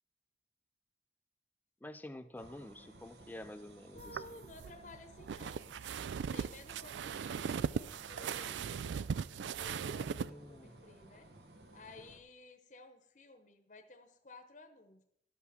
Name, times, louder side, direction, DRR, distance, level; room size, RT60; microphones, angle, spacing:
voice 1, 1.8-4.3 10.0-10.8, left 1 dB, 10° left, 11 dB, 0.4 m, -49 dB
sound 1, 2.4-12.2, right 1 dB, 65° right, 1.2 m, -58 dB
voice 2, 3.9-5.7 6.3-8.9 9.5-11.3 11.7-15.0, left 2 dB, 40° left, 6 dB, 0.9 m, -55 dB
sound 2, 4.0-10.3, right 7 dB, 85° right, 0.4 m, -39 dB
12.0 x 5.8 x 6.3 m, 0.76 s
head